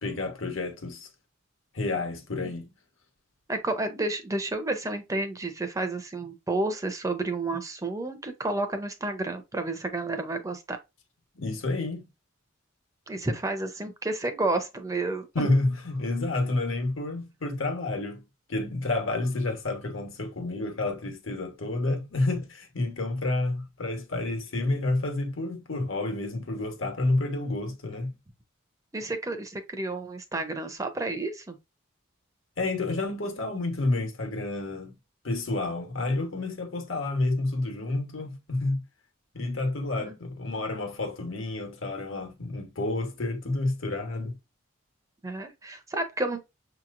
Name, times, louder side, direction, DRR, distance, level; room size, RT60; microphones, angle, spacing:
voice 1, 0.0-1.1 1.7-2.7 11.3-12.0 15.3-18.2 18.5-28.1 32.6-35.0 35.2-38.8 39.3-44.4, left 2 dB, 75° left, 1.2 m, -29 dB
voice 2, 3.5-10.8 13.1-15.5 28.9-31.6 39.9-40.1 45.2-46.4, right 2 dB, 15° right, 0.5 m, -31 dB
6.5 x 2.9 x 2.5 m
head